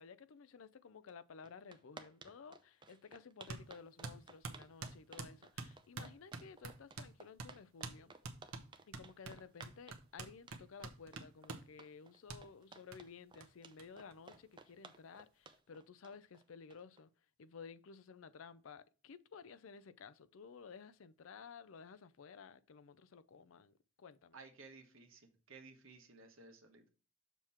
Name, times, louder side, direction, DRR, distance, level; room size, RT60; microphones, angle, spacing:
voice 1, 0.0-8.1 8.9-17.1 17.4-24.4, left 5 dB, 75° left, 0.5 m, -55 dB
sound 1, 1.1-1.2 1.4-17.0, right 4 dB, 20° right, 0.5 m, -57 dB
sound 2, 3.5-3.7 4.0-7.1 7.4-7.5 7.8-8.0 8.2-11.7 12.3-12.4 12.9-13.0 13.4-13.5 13.8-13.9 14.1-14.8, right 3 dB, 90° right, 0.9 m, -47 dB
voice 2, 24.3-25.2 25.5-26.9, right 4 dB, 70° right, 1.3 m, -56 dB
6.9 x 3.0 x 5.7 m
head